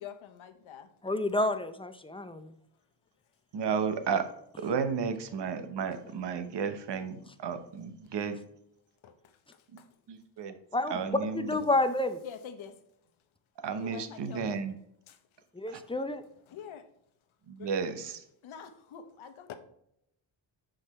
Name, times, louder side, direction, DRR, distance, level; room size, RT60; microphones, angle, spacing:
voice 1, 0.0-0.9 9.0-9.1 12.2-12.7 13.8-14.5 15.1-15.2 16.5-16.8 17.6-17.9 18.4-19.6, left 8 dB, 80° left, 0.9 m, -45 dB
voice 2, 1.0-2.5 10.7-12.2 15.6-16.2, left 2 dB, 10° left, 0.5 m, -29 dB
voice 3, 3.5-4.3 4.6-8.4 9.7-9.8 10.1-10.5 10.9-11.5 13.6-14.7 15.7-15.8 17.5-18.2, right 6 dB, 60° right, 1.0 m, -33 dB
6.3 x 5.1 x 4.3 m
cardioid pair, 85°, 46 cm